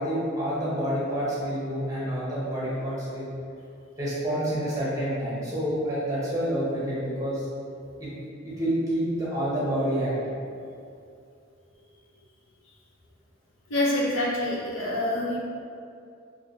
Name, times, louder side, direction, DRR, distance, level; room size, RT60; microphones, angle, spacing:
voice 1, 0.0-3.3 4.0-7.5 8.0-8.1 8.4-10.3, equal, 15° right, -9 dB, 0.9 m, -28 dB
voice 2, 13.7-15.4, left 1 dB, 75° left, -4 dB, 0.7 m, -26 dB
3.4 x 2.7 x 2.7 m, 2.5 s
head